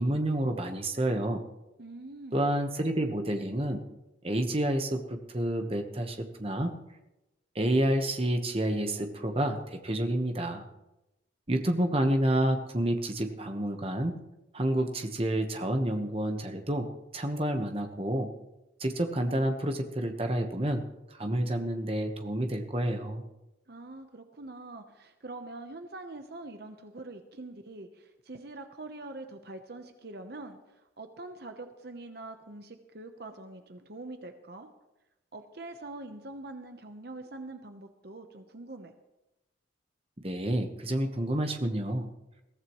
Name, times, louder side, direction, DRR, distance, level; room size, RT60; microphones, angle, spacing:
voice 1, 0.0-1.4 2.3-3.8 4.2-6.7 7.5-10.7 11.5-14.1 14.5-16.9 17.1-18.3 18.8-20.8 21.1-23.2 40.2-42.1, right 1 dB, 30° right, 5 dB, 1.2 m, -29 dB
voice 2, 1.8-2.4 23.7-34.7 35.3-38.9, right 2 dB, 55° right, 7 dB, 1.0 m, -44 dB
21.5 x 15.0 x 3.1 m, 0.97 s
head